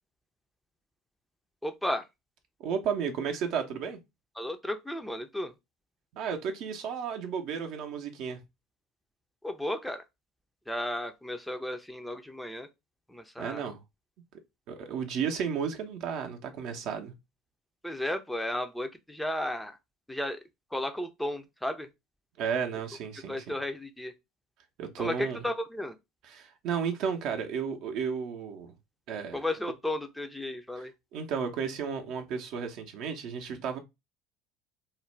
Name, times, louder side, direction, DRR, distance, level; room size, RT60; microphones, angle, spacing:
voice 1, 1.6-2.0 4.4-5.5 9.4-10.0 10.7-12.7 13.1-13.6 17.8-19.7 20.1-20.4 20.7-21.9 23.3-24.1 25.0-25.9 29.3-30.9, left 1 dB, 5° left, 0.4 m, -34 dB
voice 2, 2.6-4.0 6.1-8.4 13.4-13.8 14.7-17.1 22.4-23.6 24.8-25.4 26.2-28.7 29.1-29.4 30.8-33.8, right 7 dB, 55° right, 0.6 m, -33 dB
2.4 x 2.1 x 3.1 m
hypercardioid pair, 70°, 0 cm